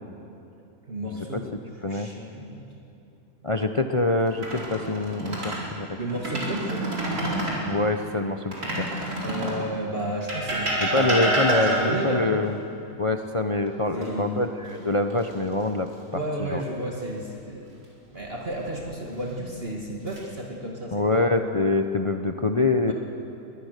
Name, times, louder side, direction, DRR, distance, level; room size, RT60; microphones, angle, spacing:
voice 1, 0.9-1.5 1.8-2.7 6.0-6.9 9.2-12.3 13.9-14.4 16.1-17.8 18.1-21.3 22.9-23.0, right 1 dB, 40° right, -1 dB, 2.2 m, -32 dB
voice 2, 3.4-5.9 7.6-8.9 10.8-12.6 13.0-16.2 16.5-16.6 20.9-22.9, left 2 dB, 35° left, 6 dB, 0.6 m, -25 dB
sound 1, 4.3-5.6 6.1-7.6 8.5-9.6 10.3-12.1 14.0-14.7 15.1-15.3 18.2-18.8 19.6-20.2, right 1 dB, 80° right, 4.8 m, -28 dB
22.5 x 20.5 x 6.6 m, 2.8 s
omnidirectional pair, 1.6 m